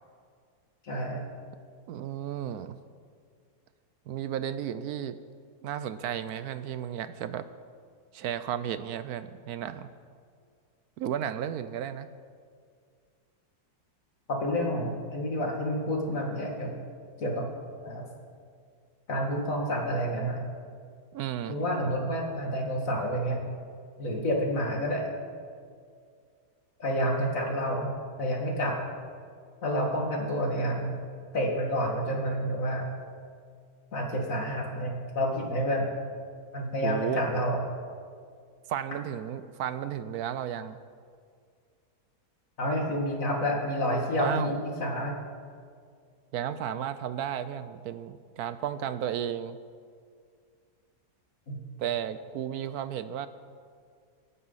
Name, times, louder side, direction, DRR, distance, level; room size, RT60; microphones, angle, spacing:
voice 1, 0.8-1.2 14.3-16.7 17.2-17.5 17.8-18.0 19.1-20.4 21.5-23.5 24.0-25.1 26.8-27.9 28.2-28.8 29.6-31.0 31.3-32.9 33.9-35.9 36.5-37.6 42.6-45.2 51.5-51.6, equal, 55° left, 0 dB, 2.5 m, -29 dB
voice 2, 1.9-2.8 4.1-5.1 5.6-7.5 8.1-9.9 11.0-12.1 21.1-21.6 36.8-37.2 38.7-40.8 44.2-44.5 46.3-49.6 51.8-53.3, right 10 dB, 75° right, 12 dB, 1.1 m, -33 dB
24.5 x 9.6 x 4.1 m, 2.2 s
omnidirectional pair, 1.7 m